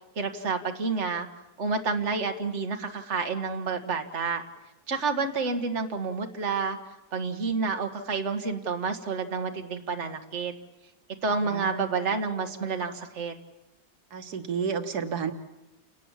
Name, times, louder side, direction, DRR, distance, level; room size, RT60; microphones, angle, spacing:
voice 1, 0.2-1.3 1.6-4.4 4.9-6.8 7.1-10.5 11.2-13.3, right 4 dB, 45° right, 5 dB, 1.9 m, -29 dB
voice 2, 11.4-11.9 14.1-15.3, right 6 dB, 85° right, 8 dB, 1.8 m, -31 dB
29.5 x 18.5 x 7.4 m, 0.97 s
omnidirectional pair, 1.7 m